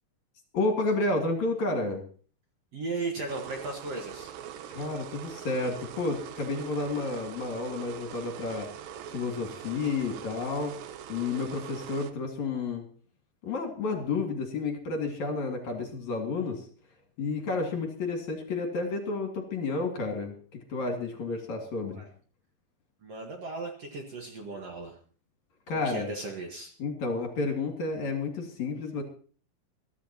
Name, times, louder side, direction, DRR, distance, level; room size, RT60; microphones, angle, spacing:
voice 1, 0.5-2.0 4.7-8.7 9.1-10.8 11.1-12.9 13.4-16.7 17.2-20.3 20.7-22.0 25.7-26.1 26.8-29.0, left 3 dB, 55° left, 3 dB, 3.2 m, -31 dB
voice 2, 2.7-4.3 8.2-8.3 21.8-22.1 23.0-25.0 25.7-26.7, right 3 dB, 50° right, 2 dB, 2.2 m, -36 dB
sound 1, 3.3-12.1, right 9 dB, 75° right, 2.3 m, -43 dB
22.5 x 13.5 x 2.9 m, 0.41 s
omnidirectional pair, 4.4 m